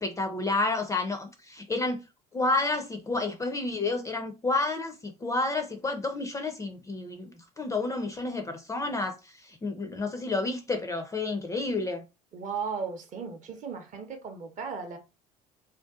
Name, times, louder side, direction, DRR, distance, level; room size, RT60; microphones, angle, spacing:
voice 1, 0.0-2.0 2.3-12.0, left 3 dB, 15° left, 0.4 m, -30 dB
voice 2, 12.3-15.0, right 5 dB, 40° right, 0.6 m, -36 dB
2.5 x 2.2 x 2.3 m
figure-of-eight pair, 60°, 20 cm